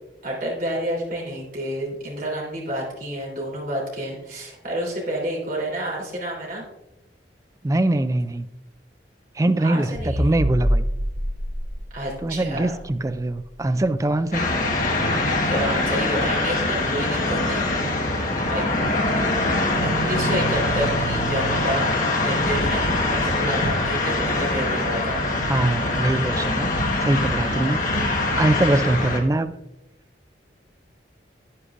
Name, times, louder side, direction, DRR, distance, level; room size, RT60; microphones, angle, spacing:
voice 1, 0.2-6.6 9.6-10.3 11.9-12.7 15.4-17.7 18.5-18.6 19.0-19.3 19.8-21.9 22.2-25.2, right 1 dB, 50° right, -3 dB, 3.5 m, -29 dB
voice 2, 7.6-8.5 9.3-10.9 12.2-14.5 25.5-26.7 27.0-27.8 28.4-29.5, right 1 dB, 20° right, 12 dB, 0.3 m, -22 dB
sound 1, 10.0-14.4, equal, 70° right, 1.7 m, -27 dB
sound 2, 14.3-29.2, left 2 dB, 45° left, 1.4 m, -23 dB
9.9 x 9.8 x 2.5 m, 0.92 s
head